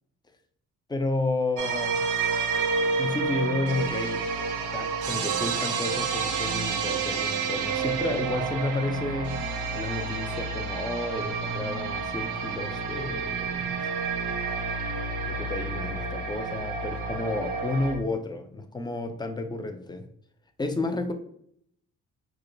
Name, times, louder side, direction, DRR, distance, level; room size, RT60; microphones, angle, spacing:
voice 1, 0.9-2.1 3.0-4.2 4.7-9.4 9.7-13.9 15.2-20.0 20.6-21.1, left 2 dB, 15° left, 7 dB, 0.4 m, -31 dB
sound 1, 1.6-18.0, right 4 dB, 80° right, 0.7 m, -29 dB
4.7 x 2.1 x 2.6 m, 0.66 s
cardioid pair, 90°, 30 cm